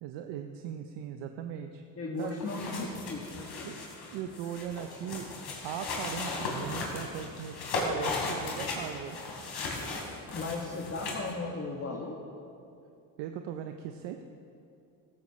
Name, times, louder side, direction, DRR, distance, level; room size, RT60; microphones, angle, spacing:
voice 1, 0.0-1.8 2.2-2.7 3.6-3.8 4.1-5.3 5.6-9.2 13.2-14.2, right 9 dB, 70° right, 6 dB, 0.8 m, -39 dB
voice 2, 2.0-3.8 10.3-12.2, left 3 dB, 30° left, -2 dB, 1.9 m, -36 dB
sound 1, 2.2-11.3, left 3 dB, 55° left, 3.7 m, -36 dB
16.0 x 14.0 x 3.2 m, 2.6 s
hypercardioid pair, 65°, 46 cm